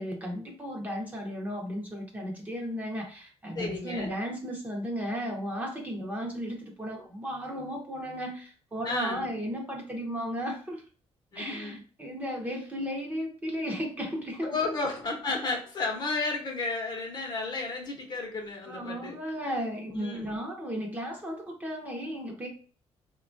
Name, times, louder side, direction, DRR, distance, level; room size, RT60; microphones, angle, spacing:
voice 1, 0.0-10.8 11.3-14.8 18.6-22.5, equal, 15° right, -1 dB, 0.7 m, -35 dB
voice 2, 3.5-4.2 8.8-9.2 11.3-11.7 14.4-19.2 19.9-20.4, left 3 dB, 40° left, 1 dB, 0.8 m, -33 dB
4.0 x 2.2 x 2.5 m, 0.40 s
cardioid pair, 150°, 11 cm